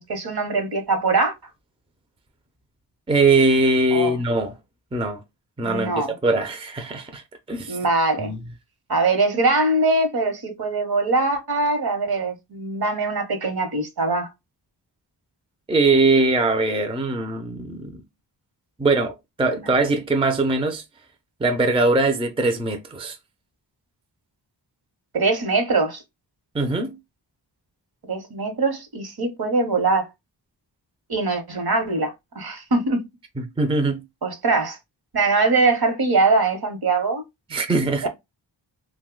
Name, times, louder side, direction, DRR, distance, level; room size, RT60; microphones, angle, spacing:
voice 1, 0.0-1.3 3.9-4.2 5.6-6.1 7.7-8.3 8.9-14.3 19.5-19.7 25.1-26.0 28.1-30.1 31.1-33.0 34.2-34.8 35.1-37.2 38.0-38.1, right 3 dB, 55° right, 1.1 m, -22 dB
voice 2, 3.1-4.6 4.9-5.2 5.6-7.2 7.5-7.8 8.2-8.4 15.7-18.0 18.8-20.8 21.4-23.2 26.5-27.0 33.4-34.0 37.5-38.1, right 3 dB, 15° right, 0.5 m, -21 dB
2.7 x 2.3 x 3.7 m
wide cardioid pair, 80°, 44 cm